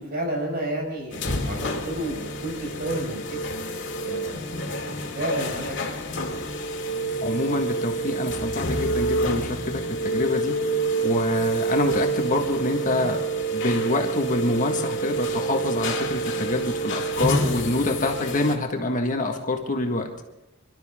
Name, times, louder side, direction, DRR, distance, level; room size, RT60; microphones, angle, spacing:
voice 1, 0.0-3.5 4.1-5.9, right 1 dB, 50° right, 1 dB, 5.4 m, -31 dB
sound 1, 1.1-18.6, right 2 dB, 60° left, 2.4 m, -28 dB
voice 2, 7.2-10.6 11.0-13.2 13.5-20.1, left 2 dB, 40° left, 3 dB, 1.6 m, -26 dB
27.0 x 12.5 x 3.7 m, 0.93 s
head